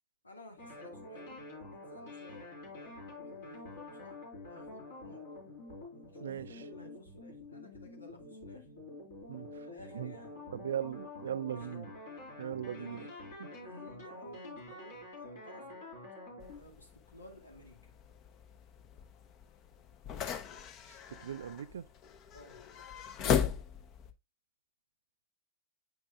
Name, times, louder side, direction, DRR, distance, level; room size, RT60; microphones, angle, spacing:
voice 1, 0.2-5.3 5.9-8.7 9.5-10.4 11.5-11.8 12.7-13.1 13.6-15.8 16.6-17.9 22.3-22.6, left 1 dB, 80° left, 1.6 m, -54 dB
sound 1, 0.6-16.6, left 2 dB, 65° left, 4.0 m, -48 dB
voice 2, 6.2-6.7 9.3-9.7 9.9-10.2 10.5-11.9 12.4-13.1 13.4-13.5 20.9-21.9, right 9 dB, 65° right, 0.3 m, -39 dB
sound 2, 16.4-24.1, left 8 dB, 35° left, 0.8 m, -38 dB
8.6 x 6.1 x 2.3 m
figure-of-eight pair, 90°, 0 cm